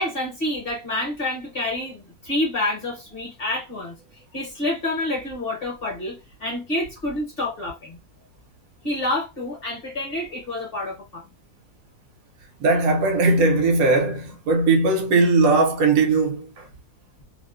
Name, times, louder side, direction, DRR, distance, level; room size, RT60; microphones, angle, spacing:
voice 1, 0.0-3.9 4.3-8.0 8.8-11.2, left 1 dB, 45° left, 0.9 m, -28 dB
voice 2, 12.6-16.7, right 3 dB, 70° right, 1.1 m, -19 dB
2.7 x 2.0 x 2.4 m
omnidirectional pair, 1.7 m